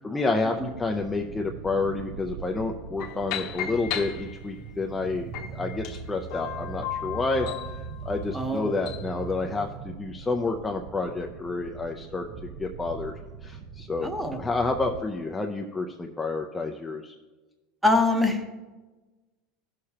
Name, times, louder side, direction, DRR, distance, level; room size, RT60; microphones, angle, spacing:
voice 1, 0.0-7.5 8.1-17.1, left 3 dB, 10° left, 2 dB, 0.5 m, -29 dB
sound 1, 0.5-15.0, right 5 dB, 45° right, 0.6 m, -41 dB
sound 2, 3.0-4.7 5.3-9.1, left 10 dB, 55° left, 1.0 m, -36 dB
voice 2, 8.3-8.7 14.0-14.4 17.8-18.5, left 2 dB, 5° right, 6 dB, 0.9 m, -24 dB
15.5 x 6.6 x 2.9 m, 1.2 s
supercardioid pair, 150°, 0 cm